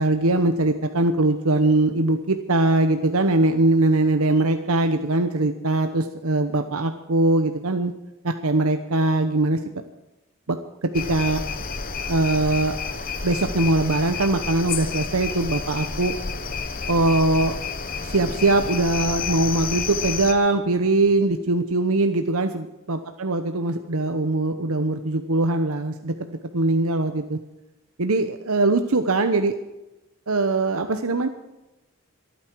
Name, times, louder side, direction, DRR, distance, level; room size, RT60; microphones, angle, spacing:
voice 1, 0.0-7.9 8.2-9.6 10.5-11.4 12.1-12.8 13.2-16.1 16.9-17.5 18.0-27.4 28.0-29.5 30.3-31.3, right 2 dB, 90° right, 7 dB, 1.0 m, -21 dB
sound 1, 10.9-20.3, left 5 dB, 40° left, 1.1 m, -30 dB
25.5 x 9.6 x 4.7 m, 0.98 s
head